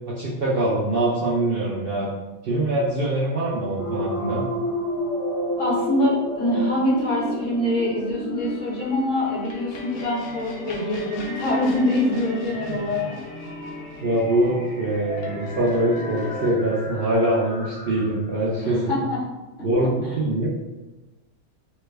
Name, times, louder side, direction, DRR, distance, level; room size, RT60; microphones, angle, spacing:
voice 1, 0.1-2.1 2.4-4.4 14.0-19.0 19.6-20.5, right 1 dB, 75° right, -6 dB, 0.5 m, -23 dB
sound 1, 3.8-18.3, left 1 dB, 25° left, 1.3 m, -33 dB
voice 2, 5.6-13.1 18.6-19.2, left 1 dB, 55° left, -6 dB, 1.3 m, -24 dB
sound 2, 8.4-16.5, left 5 dB, 75° left, 1.1 m, -38 dB
3.3 x 2.2 x 3.2 m, 1.1 s
omnidirectional pair, 1.6 m